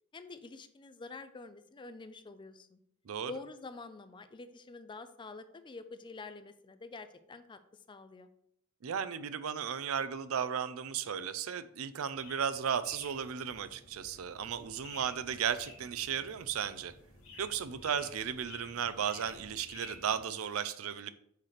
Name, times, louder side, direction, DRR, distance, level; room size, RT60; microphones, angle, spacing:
voice 1, 0.1-2.8 3.3-7.6 7.9-8.3, left 3 dB, 20° left, 0.4 m, -47 dB
voice 2, 8.8-16.9 17.4-21.1, right 8 dB, 80° right, 0.5 m, -35 dB
sound 1, 12.1-20.2, left 2 dB, 70° left, 1.8 m, -53 dB
6.5 x 3.2 x 5.7 m
head